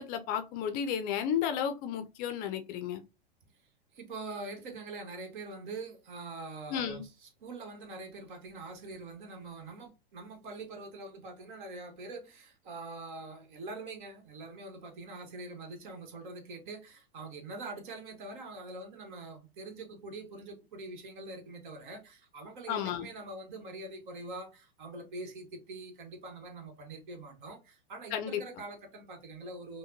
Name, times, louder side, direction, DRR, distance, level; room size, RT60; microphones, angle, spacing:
voice 1, 0.0-3.0 6.7-7.0 22.7-23.1 28.1-28.4, left 8 dB, 30° left, 0.5 m, -33 dB
voice 2, 3.9-29.8, right 2 dB, 55° right, 1.5 m, -44 dB
5.5 x 2.2 x 2.8 m
figure-of-eight pair, 100°, 30 cm